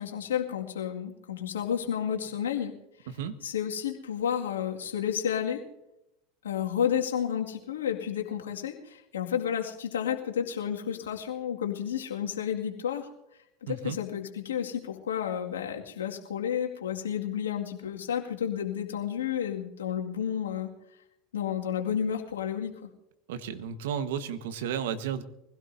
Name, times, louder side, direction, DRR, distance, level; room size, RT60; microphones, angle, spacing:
voice 1, 0.0-2.7 3.4-5.6 6.4-13.1 13.6-20.7 21.3-22.9, left 9 dB, 85° left, 1 dB, 2.1 m, -31 dB
voice 2, 13.7-14.0 23.3-25.2, right 8 dB, 75° right, 10 dB, 1.3 m, -33 dB
23.5 x 16.5 x 2.7 m, 0.85 s
hypercardioid pair, 85°, 0 cm